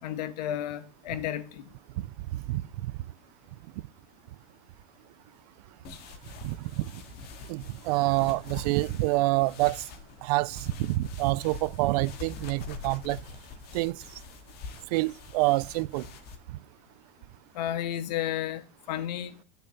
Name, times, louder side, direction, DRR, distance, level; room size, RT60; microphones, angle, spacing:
voice 1, 0.0-1.7 17.5-19.4, left 11 dB, 80° left, 1.4 m, -32 dB
voice 2, 2.5-2.9 6.4-6.9 7.5-9.8 10.2-13.2 13.7-14.0 14.9-16.1, right 20 dB, 70° right, 0.6 m, -27 dB
sound 1, 5.8-16.4, left 4 dB, 50° left, 2.2 m, -45 dB
10.0 x 5.7 x 7.1 m
supercardioid pair, 125°, 21 cm